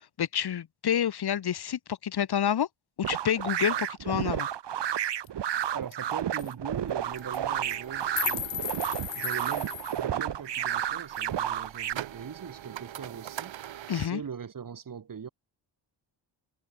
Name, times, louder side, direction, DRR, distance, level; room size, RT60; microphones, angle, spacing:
voice 1, 0.2-2.7 3.0-3.7 4.1-4.5 13.9-14.2, left 9 dB, 60° left, 2.4 m, -28 dB
sound 1, 3.0-11.9, right 10 dB, 65° right, 2.7 m, -31 dB
sound 2, 5.2-5.3 5.6-5.7 5.9-6.1 6.4-6.5 7.2-7.4 7.7-10.0, left 12 dB, 80° left, 1.8 m, -35 dB
voice 2, 5.7-8.5 9.1-13.5 13.9-15.3, right 7 dB, 45° right, 6.3 m, -41 dB
sound 3, 7.0-14.1, right 11 dB, 85° right, 3.8 m, -44 dB
cardioid pair, 130°, 45 cm